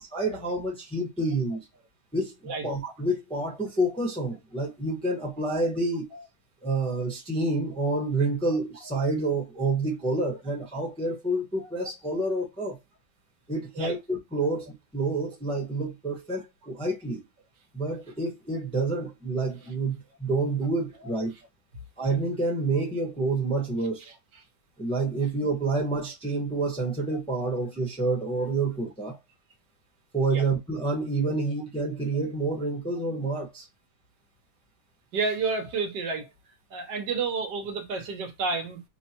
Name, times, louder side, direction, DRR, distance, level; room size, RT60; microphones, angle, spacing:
voice 1, 0.1-1.6 2.1-6.1 6.6-12.8 13.5-17.2 17.7-21.3 22.0-24.1 24.8-29.2 30.1-33.7, right 2 dB, 5° left, 0.7 m, -28 dB
voice 2, 35.1-36.3 36.7-38.8, right 4 dB, 80° right, 1.5 m, -30 dB
5.5 x 2.2 x 2.8 m
omnidirectional pair, 1.9 m